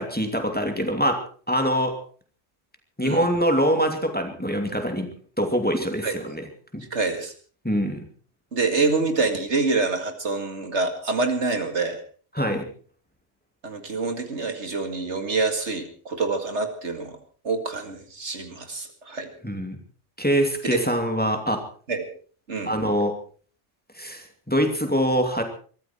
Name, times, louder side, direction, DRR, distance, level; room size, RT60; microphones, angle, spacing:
voice 1, 0.0-2.0 3.0-5.1 5.4-6.4 6.7-6.8 7.6-8.0 12.3-12.6 19.4-19.8 20.2-21.6 22.6-23.1 23.9-25.4, equal, 5° left, 4 dB, 2.7 m, -24 dB
voice 2, 6.9-7.3 8.5-12.0 13.6-17.2 17.4-19.3 21.9-22.1 22.5-22.7, right 3 dB, 70° right, 6 dB, 2.4 m, -26 dB
22.5 x 14.0 x 4.5 m, 0.43 s
omnidirectional pair, 1.3 m